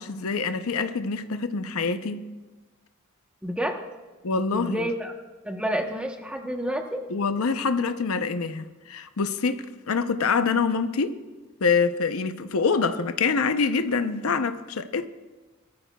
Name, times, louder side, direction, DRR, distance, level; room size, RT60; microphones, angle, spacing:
voice 1, 0.0-2.2 4.2-4.9 7.1-11.2 11.6-15.1, left 5 dB, 90° left, 0.7 m, -25 dB
voice 2, 3.4-3.8 4.5-5.1 5.4-7.0, equal, 5° right, 0.9 m, -29 dB
21.0 x 13.5 x 2.3 m
head